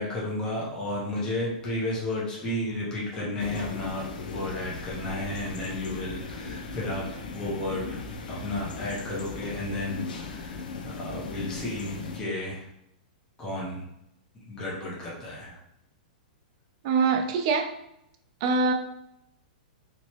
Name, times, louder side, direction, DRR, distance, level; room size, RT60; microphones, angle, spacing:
voice 1, 0.0-12.6 13.4-13.9 14.5-15.6, left 1 dB, 15° left, -6 dB, 0.8 m, -33 dB
sound 1, 3.4-12.2, left 4 dB, 80° left, 0.5 m, -38 dB
voice 2, 16.8-17.7 18.4-18.7, right 4 dB, 40° right, 4 dB, 0.4 m, -23 dB
3.0 x 2.9 x 3.0 m, 0.79 s
hypercardioid pair, 165°, 5 cm